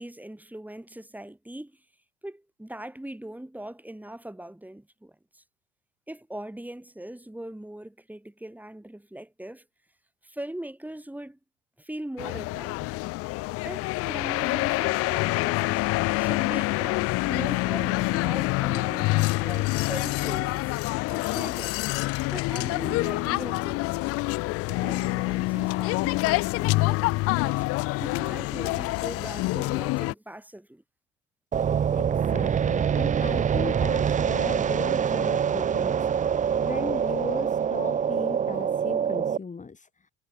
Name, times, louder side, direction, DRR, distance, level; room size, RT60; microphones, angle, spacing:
voice 1, 0.0-1.8 2.2-5.4 6.1-9.6 10.2-11.4 11.8-13.1 13.6-15.8 16.2-20.7 21.1-21.9 22.3-24.2 24.7-27.6 28.0-30.8, right 1 dB, 5° right, 7.9 m, -40 dB
sound 1, 12.2-30.1, left 22 dB, 45° left, 0.5 m, -26 dB
sound 2, 31.5-39.4, right 8 dB, 20° right, 0.7 m, -25 dB
voice 2, 32.0-36.1 36.6-40.1, left 5 dB, 20° left, 4.4 m, -37 dB
hypercardioid pair, 70°, 33 cm